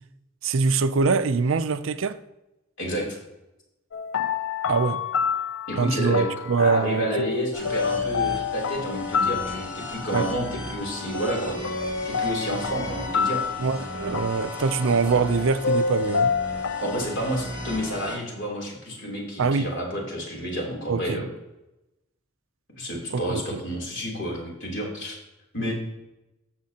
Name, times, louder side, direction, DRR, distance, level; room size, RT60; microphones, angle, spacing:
voice 1, 0.4-2.2 4.7-5.0 5.8-7.1 10.1-10.3 13.6-16.3 19.4-19.7 20.9-21.2 23.1-23.6, right 4 dB, 70° right, 0.5 m, -23 dB
voice 2, 2.8-3.2 5.7-6.3 6.6-11.6 12.0-13.4 16.8-21.3 22.8-25.1 25.5-25.7, equal, 60° left, 3.3 m, -30 dB
sound 1, 3.9-17.0, left 5 dB, 75° left, 0.5 m, -29 dB
sound 2, 7.5-18.2, left 1 dB, 20° left, 3.2 m, -36 dB
12.5 x 7.5 x 2.9 m
head